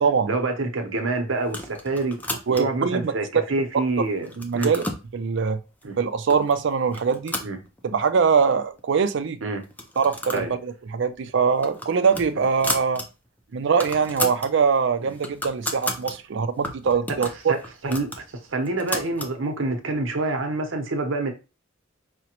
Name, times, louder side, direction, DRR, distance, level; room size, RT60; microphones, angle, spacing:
voice 1, 0.3-2.2 2.5-4.7 5.8-6.0 7.4-7.6 9.4-9.6 10.3-10.5 12.3-12.5 13.5-13.6 15.0-15.1 17.5-17.6 17.8-21.3, right 2 dB, 85° right, 0.8 m, -27 dB
sound 1, 1.4-2.9 3.4-3.9 4.2-5.1 5.8-5.9 6.3-6.6 6.9-8.1 8.5-8.6 8.8-8.9 9.6-10.5 10.8-11.0 11.4-13.1 13.4-13.5 13.7-14.5 14.9-16.1 16.6-19.3, left 1 dB, 10° left, 0.5 m, -33 dB
voice 2, 2.5-3.1 4.0-4.1 4.4-4.8 5.1-5.6 6.0-7.4 7.8-9.4 10.0-13.0 13.5-17.6, right 6 dB, 65° right, 0.4 m, -23 dB
4.9 x 2.1 x 2.9 m
head